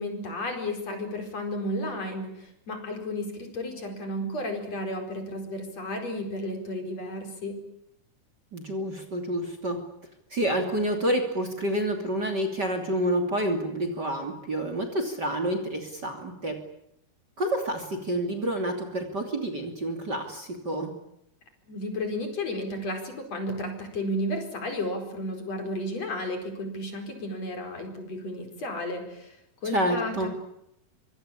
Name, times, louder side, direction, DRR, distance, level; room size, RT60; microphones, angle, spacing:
voice 1, 0.0-7.6 21.7-29.4 29.6-30.3, left 1 dB, 50° left, 5 dB, 5.7 m, -33 dB
voice 2, 8.5-9.8 10.3-16.6 17.4-20.9 29.6-30.3, right 1 dB, 30° right, 7 dB, 3.1 m, -28 dB
25.0 x 24.0 x 8.6 m, 0.78 s
omnidirectional pair, 3.8 m